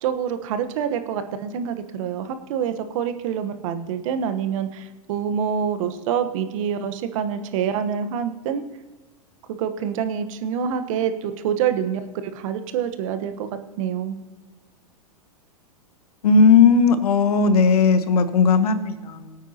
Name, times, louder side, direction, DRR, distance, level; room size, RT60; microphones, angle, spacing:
voice 1, 0.0-8.6 9.5-13.5 13.8-14.1, right 8 dB, 55° right, 9 dB, 1.2 m, -26 dB
voice 2, 16.2-19.4, left 5 dB, 75° left, 11 dB, 1.2 m, -17 dB
20.5 x 9.0 x 2.9 m, 1.2 s
hypercardioid pair, 115°, 19 cm